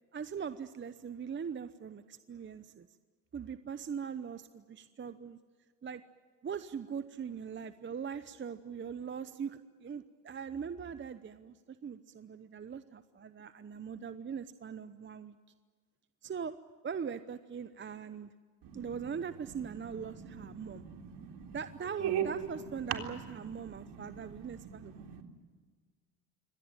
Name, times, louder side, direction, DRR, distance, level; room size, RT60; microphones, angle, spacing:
voice 1, 0.1-2.9 3.3-5.4 5.8-6.0 6.4-15.4 16.2-16.6 16.8-18.3 18.7-20.8 21.5-25.2, right 7 dB, 25° right, 12 dB, 0.8 m, -41 dB
voice 2, 19.8-21.6 22.0-22.3 22.9-25.2, right 9 dB, 55° right, 3 dB, 3.8 m, -40 dB
25.0 x 18.0 x 9.1 m, 1.5 s
supercardioid pair, 85°, 49 cm